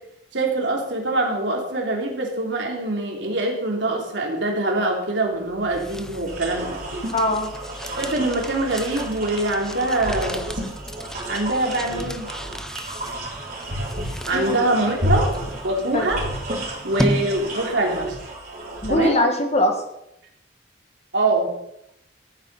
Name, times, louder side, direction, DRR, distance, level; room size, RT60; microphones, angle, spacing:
voice 1, 0.3-6.8 8.0-10.4 11.3-12.3 14.3-15.3 15.6-16.3 16.8-18.2 18.9-19.2 21.1-21.5, right 2 dB, 80° right, 0 dB, 3.0 m, -24 dB
sound 1, 5.3-17.9, equal, 5° left, 0.6 m, -34 dB
sound 2, 6.3-18.9, right 1 dB, 50° right, 4.0 m, -31 dB
voice 2, 7.1-7.5 14.3-14.6 15.9-16.1 18.8-19.8, left 1 dB, 35° left, 4 dB, 1.8 m, -21 dB
13.0 x 8.9 x 5.4 m, 0.80 s
head